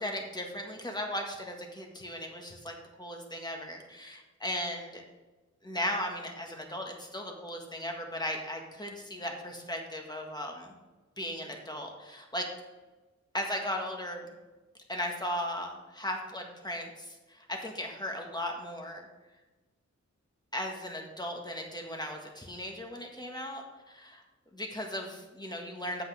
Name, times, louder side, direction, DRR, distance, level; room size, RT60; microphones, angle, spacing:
voice 1, 0.0-5.0 5.6-10.7 11.2-12.5 13.3-14.3 14.9-19.1 20.5-24.2 24.5-26.0, left 1 dB, 15° left, 2 dB, 1.6 m, -37 dB
8.8 x 8.0 x 3.6 m, 1.2 s
wide cardioid pair, 70°, 30 cm